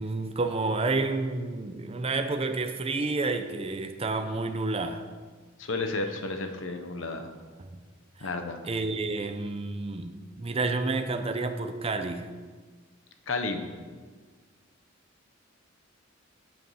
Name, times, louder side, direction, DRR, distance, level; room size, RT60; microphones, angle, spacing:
voice 1, 0.0-5.0 8.7-12.3, right 3 dB, 30° right, 7 dB, 0.6 m, -30 dB
voice 2, 5.6-7.3 8.2-8.6 13.3-13.7, left 3 dB, 75° left, 6 dB, 1.0 m, -32 dB
8.2 x 7.8 x 5.8 m, 1.5 s
head